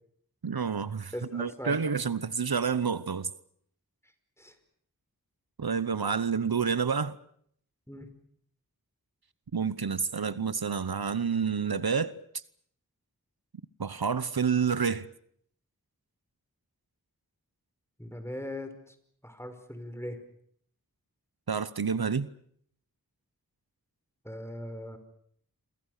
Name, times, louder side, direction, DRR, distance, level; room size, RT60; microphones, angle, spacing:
voice 1, 0.4-3.3 5.6-7.2 9.5-12.2 13.8-15.1 21.5-22.3, right 6 dB, 80° right, 0.9 m, -29 dB
voice 2, 1.1-1.8 4.4-4.5 7.9-8.1 18.0-19.0 19.2-20.2 24.2-25.0, left 1 dB, 5° left, 5.1 m, -39 dB
28.5 x 23.5 x 6.6 m
wide cardioid pair, 40°, 36 cm